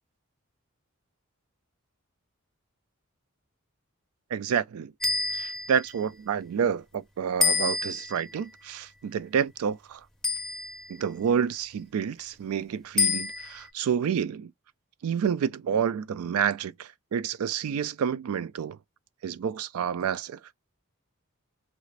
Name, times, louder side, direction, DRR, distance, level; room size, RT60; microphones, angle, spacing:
voice 1, 4.3-4.9 5.3-10.0 10.9-14.5 15.0-18.8 19.2-20.4, right 7 dB, 80° right, 0.3 m, -29 dB
sound 1, 5.0-5.9 7.4-8.3 10.2-11.0 13.0-13.7, left 4 dB, 5° left, 0.5 m, -28 dB
3.0 x 2.4 x 3.2 m
head